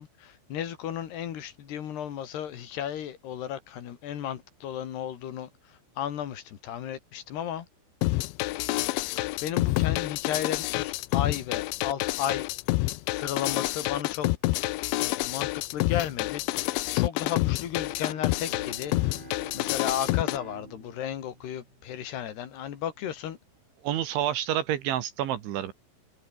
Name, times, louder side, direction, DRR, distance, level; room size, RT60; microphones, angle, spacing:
voice 1, 0.0-7.7 9.4-12.5 13.1-14.3 15.0-16.4 16.9-18.9 19.5-23.4, left 10 dB, 65° left, 4.1 m, -34 dB
sound 1, 8.0-20.4, left 20 dB, 80° left, 3.0 m, -28 dB
Bowed string instrument, 17.7-22.6, right 2 dB, 10° right, 3.4 m, -47 dB
voice 2, 23.8-25.7, right 11 dB, 75° right, 4.1 m, -28 dB
omnidirectional pair, 5.5 m